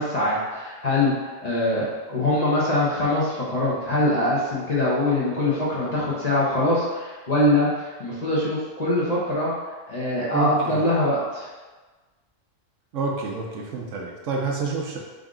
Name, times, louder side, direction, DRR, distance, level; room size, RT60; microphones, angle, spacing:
voice 1, 0.0-7.7 8.0-9.5 9.9-11.5, left 1 dB, 35° left, -7 dB, 0.8 m, -23 dB
voice 2, 10.3-10.9 12.9-15.0, right 4 dB, 75° right, -1 dB, 1.0 m, -28 dB
3.8 x 2.5 x 3.6 m, 1.3 s
omnidirectional pair, 1.3 m